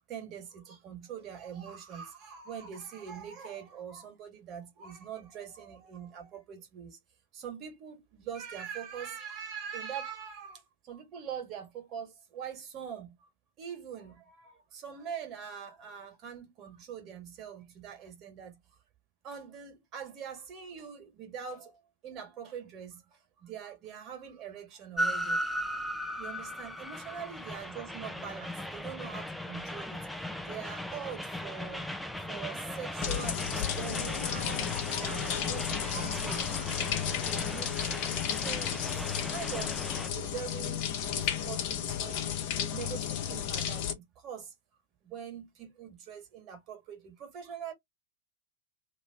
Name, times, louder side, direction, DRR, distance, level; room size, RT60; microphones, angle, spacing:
voice 1, 0.1-7.0 7.3-13.3 13.6-18.6 19.2-25.4 26.1-30.1 30.4-36.8 37.2-39.8 40.1-44.5 45.0-47.7, right 7 dB, 35° right, 1.8 m, -43 dB
Train, 25.0-40.1, equal, ahead, 0.6 m, -37 dB
sound 1, 33.0-43.9, left 9 dB, 45° left, 1.0 m, -33 dB
3.1 x 3.0 x 2.8 m
figure-of-eight pair, 90°, 0 cm